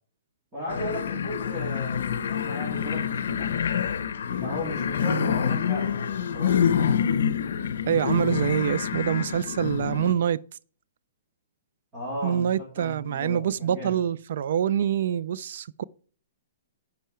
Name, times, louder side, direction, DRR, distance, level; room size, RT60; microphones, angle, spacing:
voice 1, 0.5-3.6 4.3-6.9 11.9-14.0, equal, 15° right, 3.6 m, -36 dB
sound 1, 0.7-10.1, left 8 dB, 70° left, 0.8 m, -27 dB
voice 2, 7.9-10.4 12.2-15.8, right 9 dB, 50° right, 0.3 m, -25 dB
10.0 x 5.7 x 4.4 m
hypercardioid pair, 175°, 0 cm